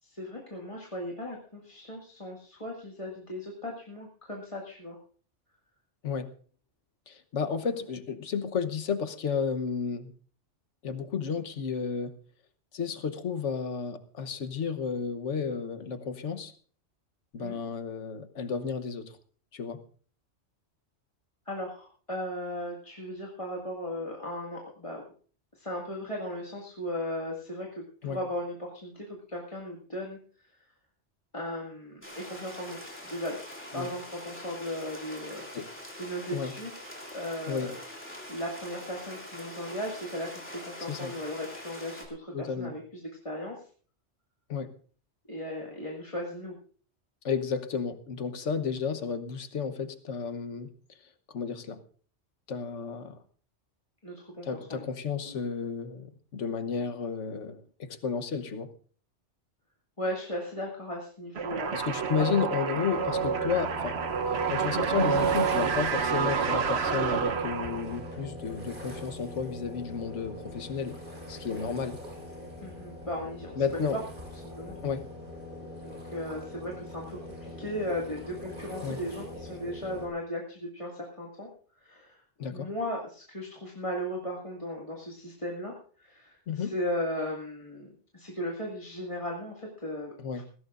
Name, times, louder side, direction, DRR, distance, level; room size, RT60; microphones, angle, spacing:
voice 1, 0.0-5.0 17.4-17.6 21.5-25.0 25.6-27.7 28.0-30.2 31.3-32.8 33.0-33.4 33.7-35.4 36.0-36.9 37.1-37.7 38.3-42.8 43.2-43.6 45.3-46.6 54.0-54.8 55.2-55.4 60.0-61.7 72.6-73.9 74.6-74.8 75.8-81.5 81.8-82.2 82.5-85.7 86.0-90.1, left 1 dB, 25° left, -3 dB, 2.2 m, -36 dB
voice 2, 7.1-10.1 10.8-12.1 12.7-16.5 17.3-19.1 19.5-19.8 28.0-28.2 33.7-33.9 35.5-35.7 36.3-36.5 37.5-37.7 40.8-41.1 42.3-42.7 44.5-44.7 47.2-50.7 51.3-51.8 52.5-53.2 54.4-58.7 61.7-64.0 64.5-71.0 71.3-72.0 73.6-74.0 74.8-75.1 78.8-79.0 82.4-82.7 86.5-86.7 90.2-90.4, left 6 dB, 80° left, 10 dB, 1.4 m, -32 dB
sound 1, 32.0-42.1, equal, 10° left, 3.3 m, -44 dB
sound 2, 61.4-68.1, right 6 dB, 65° right, 1.2 m, -28 dB
sound 3, 62.9-80.1, left 1 dB, 45° right, 4.5 m, -42 dB
20.5 x 16.0 x 2.5 m, 0.44 s
omnidirectional pair, 1.2 m